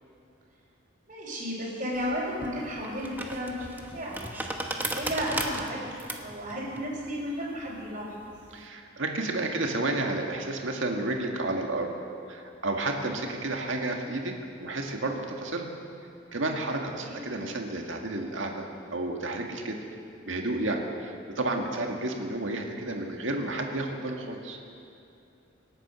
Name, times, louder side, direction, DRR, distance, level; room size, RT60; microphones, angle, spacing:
voice 1, 1.1-3.7 3.9-4.3 4.9-8.3 17.0-17.2, equal, 40° right, -9 dB, 3.6 m, -33 dB
sound 1, 1.9-8.6, right 1 dB, 10° right, 1.0 m, -37 dB
voice 2, 8.5-11.9 12.3-14.3 14.6-15.7 16.3-19.8 20.3-24.6, right 2 dB, 80° right, 2 dB, 1.8 m, -31 dB
25.5 x 9.0 x 6.2 m, 2.7 s
head